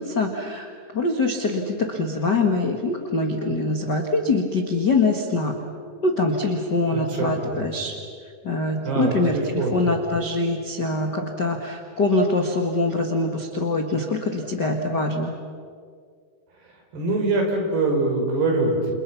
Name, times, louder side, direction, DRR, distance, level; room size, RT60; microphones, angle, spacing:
voice 1, 0.0-5.5 6.0-7.9 8.4-15.3, left 2 dB, 55° left, 3 dB, 1.2 m, -24 dB
voice 2, 6.9-7.6 8.9-9.7 16.9-18.9, right 3 dB, 65° right, 1 dB, 6.5 m, -24 dB
29.0 x 28.0 x 5.9 m, 2.1 s
omnidirectional pair, 5.0 m